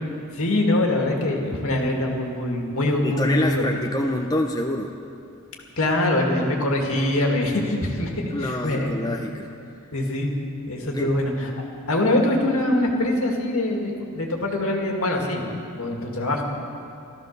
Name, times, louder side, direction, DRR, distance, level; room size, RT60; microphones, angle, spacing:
voice 1, 0.3-3.9 5.8-8.9 9.9-10.3 10.7-11.5 11.9-15.4 15.7-16.4, left 1 dB, 65° left, 0 dB, 2.2 m, -23 dB
voice 2, 3.0-4.9 8.3-9.5 10.9-11.2, left 1 dB, 15° left, 2 dB, 0.7 m, -26 dB
15.5 x 13.5 x 6.7 m, 2.6 s
head